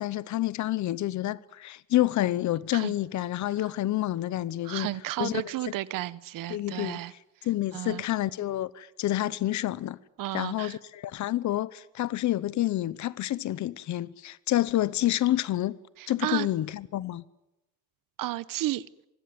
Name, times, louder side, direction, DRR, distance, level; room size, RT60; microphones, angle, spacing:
voice 1, 0.0-4.9 5.2-5.7 6.5-7.0 7.4-10.0 10.3-15.8 16.1-17.2, left 14 dB, 60° left, 0.9 m, -28 dB
voice 2, 4.6-7.1 7.7-8.0 10.2-10.8 16.0-16.5 18.2-18.8, right 15 dB, 90° right, 1.0 m, -32 dB
26.0 x 20.5 x 9.3 m
cardioid pair, 165°, 32 cm